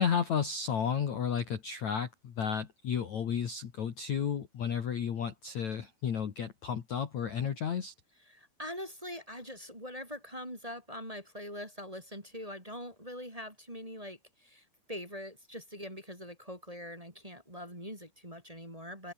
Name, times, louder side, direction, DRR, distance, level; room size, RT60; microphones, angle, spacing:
voice 1, 0.0-7.9, left 7 dB, 50° left, 2.8 m, -32 dB
voice 2, 8.3-19.1, equal, 10° right, 4.5 m, -43 dB
open air
omnidirectional pair, 5.1 m